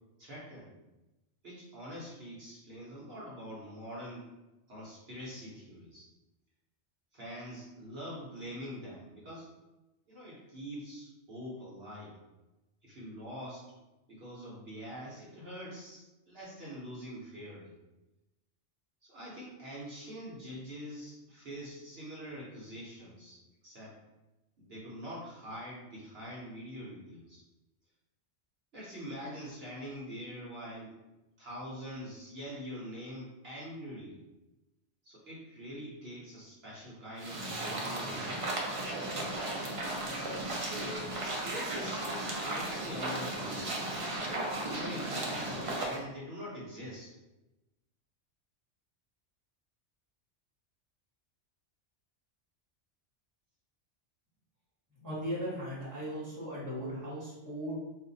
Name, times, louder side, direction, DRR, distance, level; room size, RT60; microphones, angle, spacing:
voice 1, 0.2-0.7 1.4-4.3 4.7-6.1 7.1-9.5 10.1-12.2 12.8-13.7 14.1-17.7 19.0-24.0 24.6-27.4 28.7-30.9 31.4-34.2 35.0-39.0 40.5-44.2 44.7-47.1, equal, 60° right, -7 dB, 1.1 m, -44 dB
sound 1, 37.2-46.0, right 1 dB, 40° right, 0.5 m, -35 dB
voice 2, 55.0-57.7, equal, 15° right, -7 dB, 1.2 m, -37 dB
2.5 x 2.5 x 3.9 m, 1.0 s
omnidirectional pair, 1.2 m